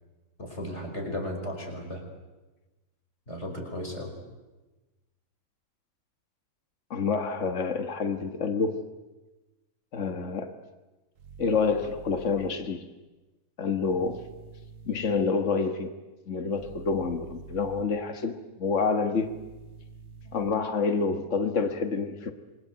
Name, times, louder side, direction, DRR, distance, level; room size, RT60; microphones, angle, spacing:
voice 1, 0.4-2.0 3.3-4.1, left 1 dB, 20° left, 3 dB, 5.5 m, -35 dB
voice 2, 6.9-8.8 9.9-10.6 11.4-12.9 13.6-14.2 14.8-16.0 16.3-19.3 20.3-22.3, left 4 dB, 50° left, 6 dB, 0.8 m, -28 dB
sound 1, 11.2-12.5 13.8-15.2 16.5-17.8 19.2-20.5, right 5 dB, 70° right, 2.6 m, -47 dB
27.5 x 23.5 x 8.1 m, 1.1 s
omnidirectional pair, 3.5 m